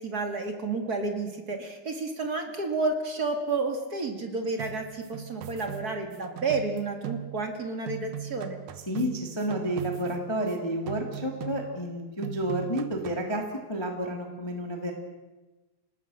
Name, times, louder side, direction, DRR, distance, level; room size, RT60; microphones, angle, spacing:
voice 1, 0.0-8.6, right 3 dB, 30° right, 4 dB, 2.1 m, -31 dB
sound 1, 4.6-7.6 7.9-10.6 10.9-11.9 12.2-13.3, right 11 dB, 65° right, 2.3 m, -40 dB
voice 2, 8.9-13.4 13.7-14.9, equal, 10° left, 2 dB, 1.9 m, -30 dB
27.5 x 19.0 x 6.5 m, 1.1 s
omnidirectional pair, 4.5 m